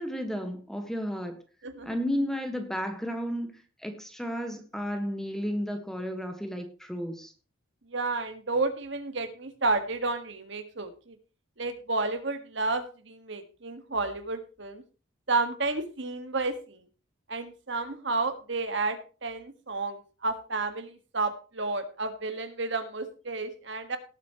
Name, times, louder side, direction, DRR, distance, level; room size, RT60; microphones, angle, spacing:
voice 1, 0.0-1.4 1.8-3.5 3.8-7.3, equal, ahead, 5 dB, 1.6 m, -33 dB
voice 2, 1.6-2.0 7.9-11.2 11.6-14.8 15.3-16.8 17.3-24.0, right 3 dB, 60° right, 8 dB, 1.8 m, -31 dB
18.5 x 8.3 x 3.1 m, 0.35 s
head